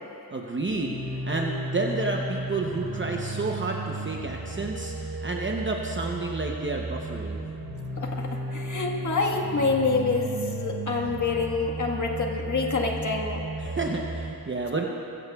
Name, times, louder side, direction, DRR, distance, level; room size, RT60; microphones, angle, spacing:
voice 1, 0.3-1.0 1.2-7.4 13.6-14.9, right 3 dB, 30° right, 0 dB, 0.8 m, -30 dB
sound 1, 0.6-14.3, right 2 dB, 85° right, 1.1 m, -34 dB
voice 2, 8.0-13.7, left 4 dB, 55° left, 0 dB, 1.6 m, -27 dB
22.0 x 15.0 x 2.4 m, 2.8 s
wide cardioid pair, 125°, 36 cm